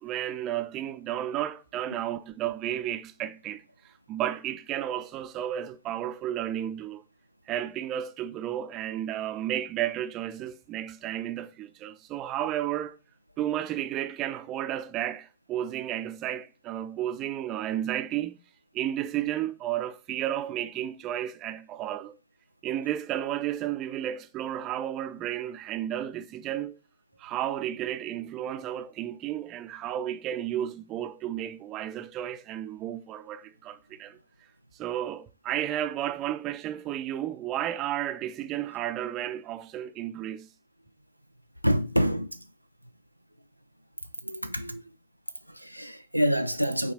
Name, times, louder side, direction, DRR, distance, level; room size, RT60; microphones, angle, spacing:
voice 1, 0.0-3.6 4.1-7.0 7.5-12.9 13.4-18.4 18.7-22.1 22.6-26.7 27.2-34.2 34.8-40.5, right 12 dB, 35° right, 0.8 m, -32 dB
voice 2, 41.6-42.5 44.2-44.8 45.5-46.9, equal, 90° right, 0.3 m, -27 dB
8.5 x 3.3 x 3.9 m
figure-of-eight pair, 90°, 0 cm